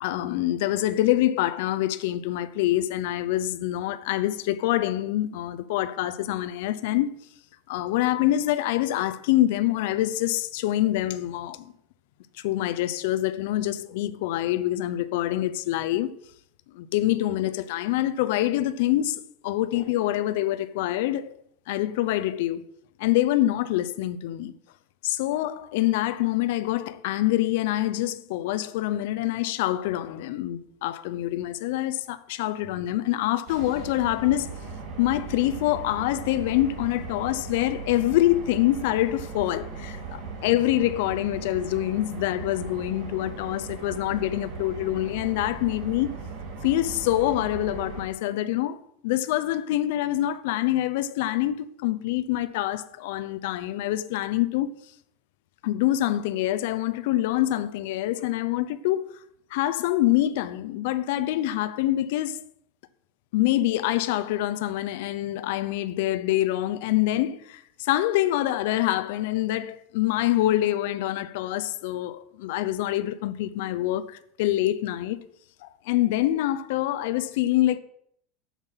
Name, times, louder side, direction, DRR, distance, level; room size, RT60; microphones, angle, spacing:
voice 1, 0.0-7.2 7.7-11.7 12.4-16.1 16.7-21.4 21.7-22.6 23.0-24.5 25.0-34.6 35.0-46.2 46.6-54.8 55.6-59.2 59.5-62.4 63.3-75.2 75.6-77.8, left 14 dB, 70° left, 0.6 m, -25 dB
sound 1, 33.5-48.1, right 4 dB, 60° right, 2.2 m, -38 dB
7.3 x 7.1 x 5.7 m
supercardioid pair, 155°, 0 cm